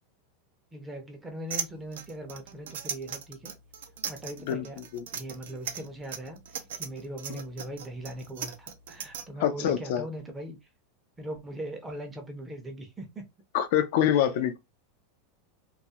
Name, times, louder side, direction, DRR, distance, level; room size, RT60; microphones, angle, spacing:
voice 1, 0.7-3.5 4.1-4.8 5.1-6.4 6.8-10.6 11.2-13.3, right 1 dB, 10° right, 0.5 m, -40 dB
sound 1, 1.5-9.2, right 8 dB, 85° right, 0.4 m, -37 dB
voice 2, 4.5-5.0 7.3-7.4 9.4-10.1 13.5-14.6, left 10 dB, 60° left, 0.3 m, -26 dB
2.3 x 2.0 x 2.7 m
supercardioid pair, 145°, 0 cm